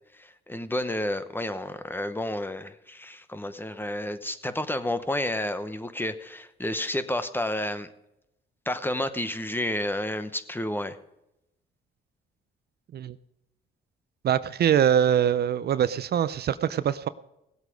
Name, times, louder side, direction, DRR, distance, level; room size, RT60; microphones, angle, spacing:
voice 1, 0.1-7.9 8.7-11.0, left 1 dB, 10° left, 11 dB, 0.9 m, -30 dB
voice 2, 14.2-17.1, right 9 dB, 55° right, 15 dB, 0.5 m, -23 dB
17.5 x 8.1 x 5.1 m, 0.87 s
cardioid pair, 90°, 20 cm